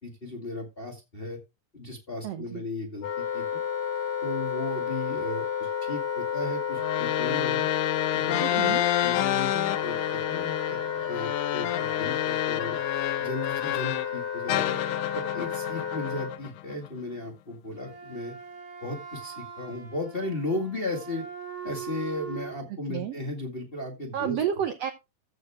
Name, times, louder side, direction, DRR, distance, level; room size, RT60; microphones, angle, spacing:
voice 1, 0.0-1.4 1.7-3.4 4.2-7.7 8.1-12.8 13.2-14.8 15.1-18.3 18.8-21.2 21.6-24.4, left 2 dB, 20° left, 2 dB, 1.6 m, -35 dB
voice 2, 2.2-2.6 8.4-8.8 22.9-23.2 24.1-24.9, right 9 dB, 70° right, 8 dB, 1.6 m, -30 dB
Wind instrument woodwind instrument, 3.0-16.4, left 7 dB, 45° left, 1.5 m, -32 dB
sound 1, 6.7-14.1 14.5-16.9, left 13 dB, 80° left, 1.9 m, -29 dB
Wind instrument woodwind instrument 2, 17.7-22.6, right 7 dB, 45° right, 3.2 m, -41 dB
14.5 x 6.4 x 3.5 m, 0.24 s
omnidirectional pair, 3.9 m